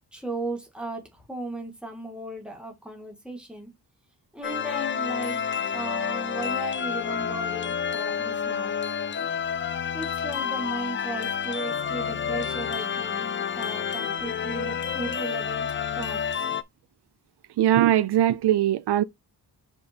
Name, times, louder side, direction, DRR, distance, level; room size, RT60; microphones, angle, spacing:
voice 1, 0.1-3.7 4.3-5.4 5.7-8.8 9.9-15.7 15.9-16.2, right 2 dB, ahead, 1.8 m, -36 dB
sound 1, 4.4-16.6, left 7 dB, 30° left, 0.4 m, -29 dB
voice 2, 17.6-19.0, right 12 dB, 80° right, 0.5 m, -20 dB
5.3 x 4.3 x 4.3 m
wide cardioid pair, 150°, 39 cm